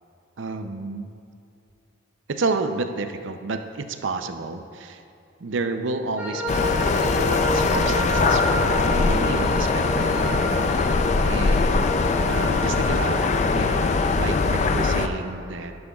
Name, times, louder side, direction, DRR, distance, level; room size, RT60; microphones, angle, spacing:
voice 1, 0.4-1.1 2.3-5.0 5.4-6.9 7.2-10.9 11.3-11.8 12.3-15.7, right 3 dB, 80° right, 8 dB, 0.6 m, -31 dB
sound 1, 6.2-15.1, equal, 5° right, 1.0 m, -31 dB
sound 2, 6.5-15.1, left 4 dB, 35° left, 0.3 m, -21 dB
11.0 x 9.8 x 2.4 m, 2.8 s
head